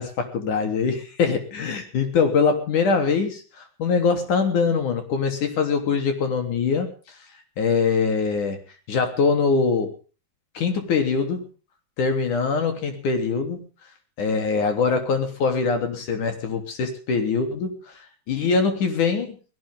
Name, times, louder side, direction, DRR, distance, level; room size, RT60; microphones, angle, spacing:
voice 1, 0.0-6.9 7.6-8.6 8.9-9.9 10.5-11.4 12.0-13.6 14.2-17.7 18.3-19.4, left 5 dB, 90° left, 6 dB, 4.7 m, -23 dB
19.5 x 18.0 x 3.7 m, 0.37 s
omnidirectional pair, 3.4 m